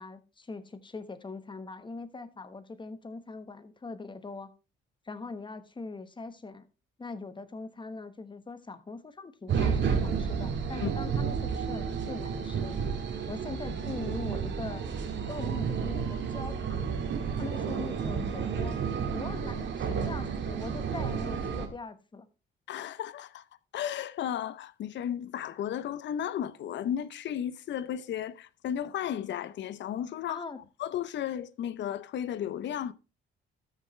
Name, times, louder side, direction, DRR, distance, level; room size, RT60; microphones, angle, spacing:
voice 1, 0.0-4.5 5.0-6.7 7.0-12.8 13.3-14.8 15.3-16.9 17.4-18.8 19.1-22.3 30.3-30.6, left 3 dB, 25° left, 1.2 m, -41 dB
sound 1, 9.5-21.7, right 6 dB, 70° right, 1.8 m, -31 dB
voice 2, 22.7-23.4 23.7-30.4 30.8-32.9, left 10 dB, 65° left, 0.7 m, -34 dB
13.5 x 6.7 x 3.2 m
cardioid pair, 90°, 20 cm